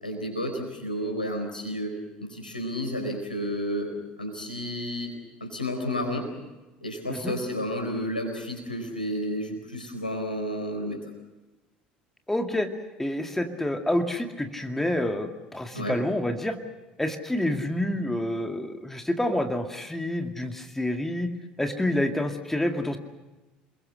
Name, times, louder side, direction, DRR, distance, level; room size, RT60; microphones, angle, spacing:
voice 1, 0.0-3.9 4.2-5.1 5.4-6.3 6.8-11.0 15.7-16.0, equal, 85° left, 3 dB, 4.4 m, -31 dB
voice 2, 12.3-12.7 13.0-16.6 17.0-21.3 21.6-23.0, left 1 dB, 5° left, 5 dB, 2.2 m, -28 dB
28.0 x 22.0 x 6.4 m, 1.1 s
figure-of-eight pair, 65°, 5 cm